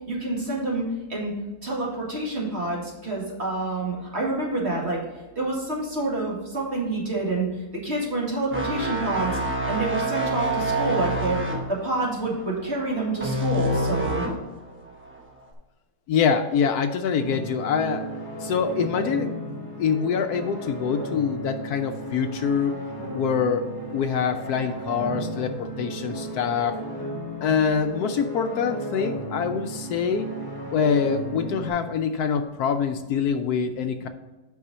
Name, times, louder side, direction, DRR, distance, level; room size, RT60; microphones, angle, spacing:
voice 1, 0.1-1.3 1.6-5.0 5.4-9.4 9.6-11.4 11.7-14.3, right 2 dB, 40° right, -3 dB, 2.4 m, -28 dB
sound 1, 8.5-14.5 14.9-15.2, right 1 dB, 10° right, 0.8 m, -27 dB
voice 2, 16.1-18.1 18.4-22.8 23.1-23.7 23.9-26.8 27.4-30.3 30.7-34.1, left 6 dB, 75° left, 8 dB, 1.1 m, -25 dB
sound 2, 17.2-31.7, right 1 dB, 15° left, 1.3 m, -35 dB
8.5 x 5.5 x 4.1 m, 1.2 s
omnidirectional pair, 1.8 m